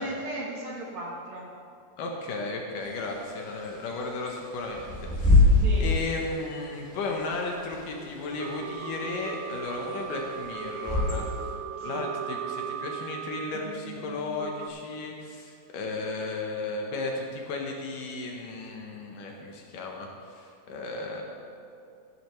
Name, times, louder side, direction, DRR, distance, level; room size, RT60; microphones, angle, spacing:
voice 1, 0.0-1.5 5.5-5.9 11.7-12.0, right 2 dB, 60° right, -3 dB, 2.2 m, -36 dB
voice 2, 2.0-11.3 11.8-21.2, left 3 dB, 70° left, 1 dB, 2.4 m, -34 dB
Bird / Wind, 2.8-11.5, left 2 dB, 5° left, 1.7 m, -26 dB
sound 1, 8.3-14.7, right 7 dB, 85° right, 2.6 m, -37 dB
15.0 x 11.0 x 3.1 m, 2.5 s
omnidirectional pair, 4.3 m